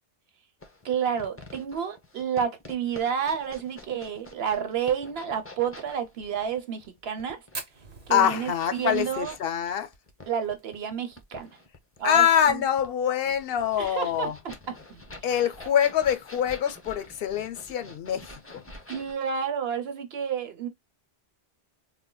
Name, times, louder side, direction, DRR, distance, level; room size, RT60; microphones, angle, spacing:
sound 1, 0.6-19.1, left 2 dB, 15° left, 0.5 m, -48 dB
voice 1, 0.8-7.4 8.1-9.3 10.3-11.5 12.0-12.6 13.8-15.0 18.9-20.7, right 7 dB, 70° right, 1.0 m, -30 dB
Fire, 7.5-12.0 12.3-12.4 12.7-12.8 13.1-13.6 14.1-14.2 15.2-15.4, right 3 dB, 50° right, 1.2 m, -44 dB
voice 2, 8.1-9.9 12.0-14.4 15.2-18.6, left 9 dB, 65° left, 0.7 m, -25 dB
4.1 x 2.2 x 2.2 m
omnidirectional pair, 1.1 m